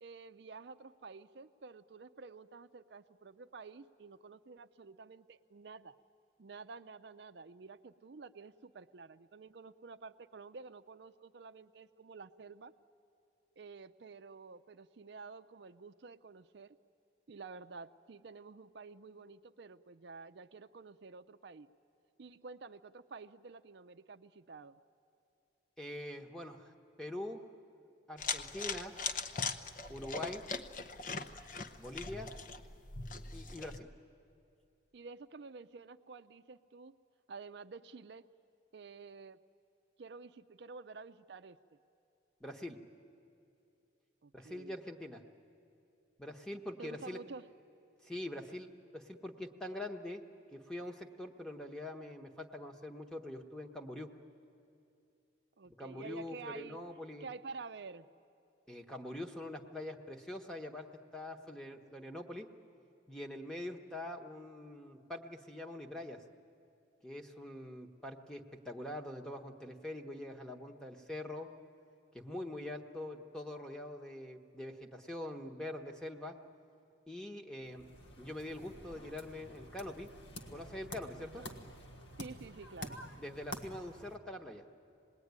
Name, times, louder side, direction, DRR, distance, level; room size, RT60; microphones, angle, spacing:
voice 1, 0.0-6.0 6.4-12.7 13.6-16.8 17.3-21.7 22.2-24.8 34.9-36.9 37.3-38.3 38.7-39.4 40.0-41.6 44.2-44.8 46.8-47.5 55.6-56.8 57.2-58.1 81.2-81.6 82.2-83.0, right 4 dB, 65° right, 9 dB, 0.5 m, -50 dB
voice 2, 25.8-27.5 28.1-28.9 29.9-30.4 31.8-32.3 33.3-33.9 42.4-42.8 44.3-45.2 46.2-47.2 48.0-50.2 50.5-54.1 55.8-57.3 58.7-60.9 61.1-62.5 63.1-66.2 67.0-71.5 72.1-76.4 77.1-77.8 78.2-80.1 80.5-81.5 83.2-84.6, left 1 dB, 5° left, 4 dB, 1.1 m, -44 dB
sound 1, 28.2-33.8, left 4 dB, 45° left, 0.8 m, -40 dB
sound 2, 77.6-84.2, left 1 dB, 75° left, 1.7 m, -49 dB
26.5 x 20.0 x 9.5 m, 2.7 s
head